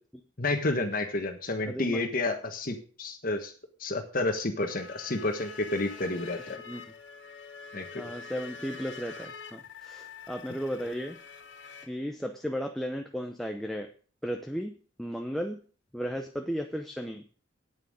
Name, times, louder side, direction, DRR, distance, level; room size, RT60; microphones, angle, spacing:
voice 1, 0.4-3.5 3.8-6.6 7.7-8.0, left 2 dB, 45° left, 5 dB, 1.4 m, -30 dB
voice 2, 1.7-2.0 6.7-6.8 8.0-11.2 11.8-13.9 14.2-14.7 15.0-15.6 15.9-17.2, equal, ahead, 3 dB, 0.8 m, -34 dB
sound 1, 4.6-11.9, left 5 dB, 65° left, 2.1 m, -46 dB
9.3 x 9.1 x 6.4 m, 0.41 s
head